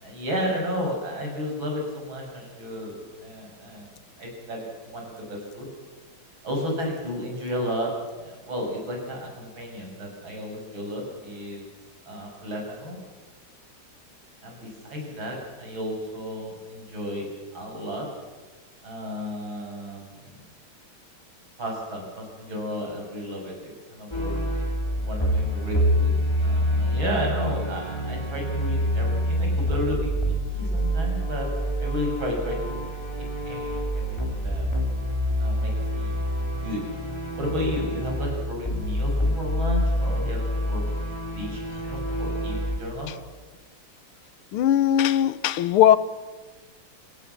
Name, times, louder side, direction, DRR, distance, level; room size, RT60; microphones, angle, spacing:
voice 1, 0.0-3.9 4.2-5.7 6.4-7.9 8.2-11.6 12.1-13.0 14.4-17.3 17.5-18.1 18.8-20.4 21.6-24.4 25.0-26.1 26.4-30.1 30.5-31.5 31.8-32.8 33.4-34.6 35.4-36.1 36.6-36.8 37.4-40.8 41.4-43.1, equal, 65° right, 0 dB, 6.8 m, -32 dB
sound 1, 24.1-42.8, equal, 10° left, 3.2 m, -26 dB
voice 2, 44.5-46.0, left 11 dB, 85° left, 16 dB, 1.8 m, -19 dB
26.5 x 16.0 x 7.4 m, 1.3 s
omnidirectional pair, 2.3 m